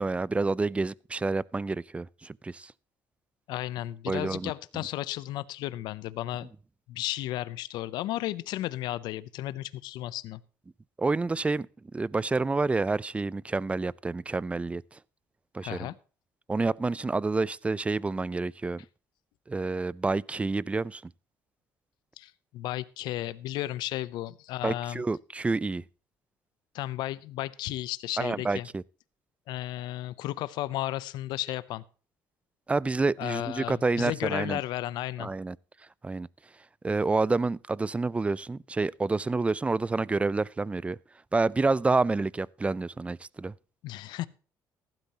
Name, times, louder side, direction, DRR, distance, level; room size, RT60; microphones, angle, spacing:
voice 1, 0.0-2.7 4.1-4.5 11.0-11.7 11.9-14.8 15.5-15.8 16.5-18.8 19.5-21.0 24.6-25.8 28.2-28.8 32.7-34.6 35.2-35.6 36.0-36.3 36.8-41.0 41.3-43.5, right 3 dB, 15° right, 0.4 m, -28 dB
voice 2, 3.5-6.5 6.9-10.4 15.6-16.0 22.2-25.0 26.7-28.7 29.5-31.8 33.2-35.3 43.8-44.3, left 15 dB, 80° left, 0.6 m, -34 dB
15.0 x 12.0 x 2.9 m
cardioid pair, 90°, 7 cm